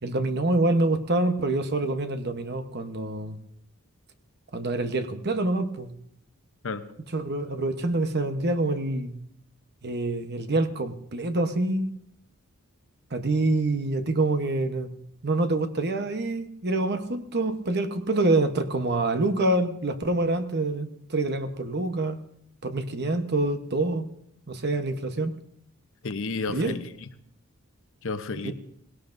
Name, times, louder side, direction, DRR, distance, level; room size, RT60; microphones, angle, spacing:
voice 1, 0.0-3.4 4.5-5.9 7.1-9.1 9.8-11.9 13.1-14.9 15.2-22.2 22.6-24.1 24.5-25.3 26.5-26.8 28.4-28.5, right 2 dB, 50° right, 8 dB, 1.0 m, -26 dB
voice 2, 26.0-27.1 28.0-28.5, left 3 dB, 60° left, 10 dB, 0.9 m, -32 dB
19.0 x 17.5 x 2.6 m, 0.70 s
head